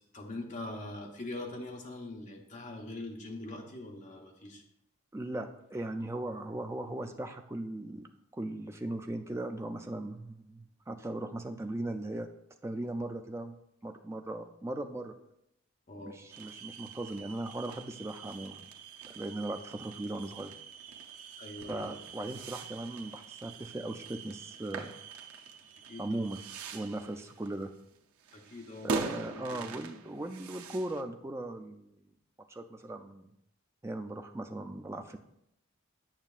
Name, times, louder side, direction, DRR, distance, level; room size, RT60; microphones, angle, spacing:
voice 1, 0.1-4.6 15.9-16.2 21.4-21.9 25.9-26.0 28.3-29.0 29.3-29.8, left 2 dB, 35° left, 1 dB, 0.9 m, -43 dB
voice 2, 5.1-8.1 8.3-12.3 12.6-13.6 13.8-15.1 16.0-18.7 19.1-20.5 21.7-24.9 26.0-26.4 26.7-27.7 28.8-32.0 32.5-33.3 33.8-35.2, right 1 dB, 10° right, 5 dB, 0.3 m, -38 dB
sound 1, 16.3-31.0, right 5 dB, 90° right, 0.6 m, -43 dB
8.9 x 6.5 x 2.4 m, 0.79 s
head